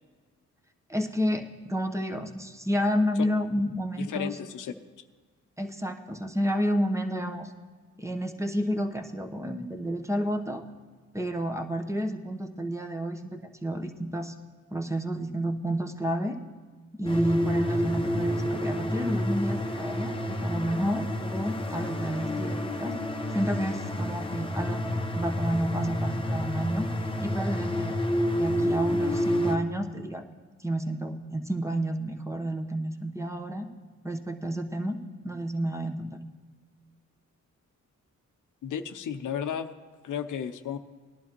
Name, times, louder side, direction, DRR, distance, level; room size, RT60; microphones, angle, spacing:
voice 1, 0.9-4.4 5.6-7.5 8.0-10.6 11.1-14.3 14.7-16.4 17.0-23.0 23.3-26.9 27.2-27.9 28.3-30.2 30.6-33.7 34.0-36.2, equal, 10° right, 4 dB, 1.0 m, -30 dB
voice 2, 4.0-4.7 38.6-39.7 40.0-40.8, left 8 dB, 90° left, 9 dB, 0.7 m, -33 dB
sound 1, 17.0-29.6, equal, 15° left, 1.0 m, -29 dB
18.5 x 11.0 x 3.0 m, 1.5 s
cardioid pair, 85°, 30 cm